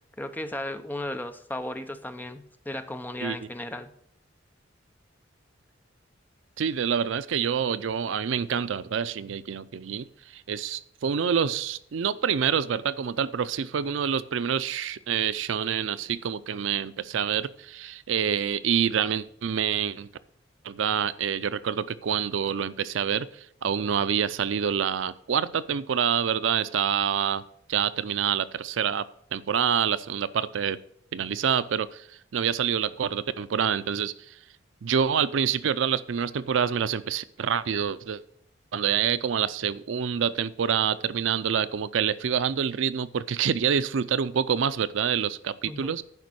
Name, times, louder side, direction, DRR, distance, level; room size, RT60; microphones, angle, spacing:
voice 1, 0.2-3.9 45.6-45.9, left 1 dB, 10° left, 8 dB, 0.6 m, -35 dB
voice 2, 6.6-10.1 10.3-20.1 20.6-27.4 27.7-29.0 29.3-30.8 31.1-32.1 32.3-34.3 34.8-38.2 38.7-46.0, right 7 dB, 75° right, 15 dB, 0.4 m, -27 dB
11.0 x 5.2 x 6.3 m, 0.68 s
head